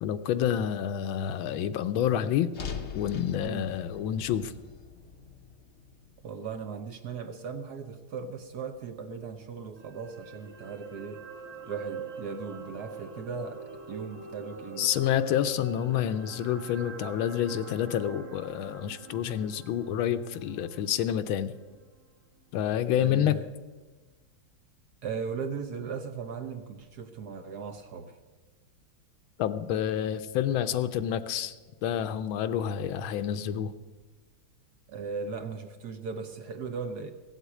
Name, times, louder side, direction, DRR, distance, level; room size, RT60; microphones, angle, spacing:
voice 1, 0.0-2.5 2.9-4.5 14.8-21.5 22.5-23.3 29.4-31.6 31.8-33.7, left 10 dB, 75° left, 11 dB, 1.4 m, -28 dB
sound 1, 2.5-6.8, left 6 dB, 55° left, 0.7 m, -42 dB
voice 2, 6.2-11.2 11.7-15.2 23.0-23.5 25.0-28.2 34.9-37.1, right 5 dB, 60° right, 7 dB, 1.1 m, -38 dB
sound 2, 9.8-22.1 22.4-22.6, right 5 dB, 40° right, 1.9 m, -45 dB
16.0 x 8.1 x 8.3 m, 1.3 s
omnidirectional pair, 2.3 m